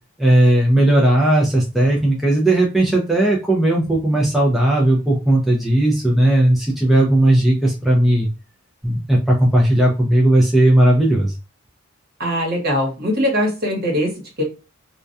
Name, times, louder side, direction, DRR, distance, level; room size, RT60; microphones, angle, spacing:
voice 1, 0.2-8.3 8.8-11.3, right 1 dB, ahead, -3 dB, 0.5 m, -16 dB
voice 2, 12.2-14.4, equal, 45° right, -1 dB, 1.1 m, -21 dB
2.3 x 2.2 x 2.5 m, 0.30 s
head